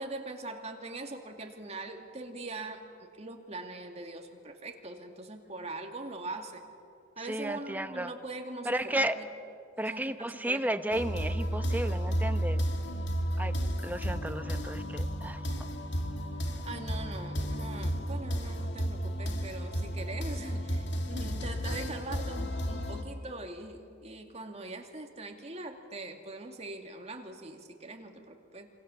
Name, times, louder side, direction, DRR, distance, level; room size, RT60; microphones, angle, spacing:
voice 1, 0.0-2.8 3.1-6.6 7.2-9.3 9.9-10.6 16.6-28.7, right 2 dB, 35° right, 3 dB, 2.4 m, -42 dB
voice 2, 7.3-8.1 8.6-9.1 9.8-12.6 13.4-13.6 13.8-15.7, right 1 dB, 10° right, 9 dB, 1.0 m, -33 dB
sound 1, 10.9-23.0, equal, 60° left, 2.3 m, -33 dB
27.0 x 26.5 x 7.3 m, 2.5 s
head